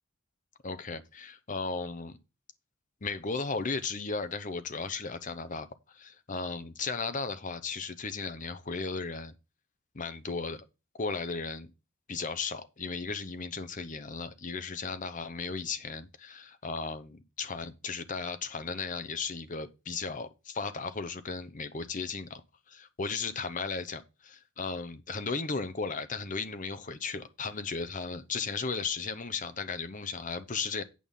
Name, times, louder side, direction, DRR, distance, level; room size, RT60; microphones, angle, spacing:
voice 1, 0.6-2.2 3.0-9.3 9.9-10.6 11.0-11.7 12.1-22.3 22.7-30.8, left 4 dB, 40° left, 0.9 m, -35 dB
8.7 x 5.4 x 5.5 m
head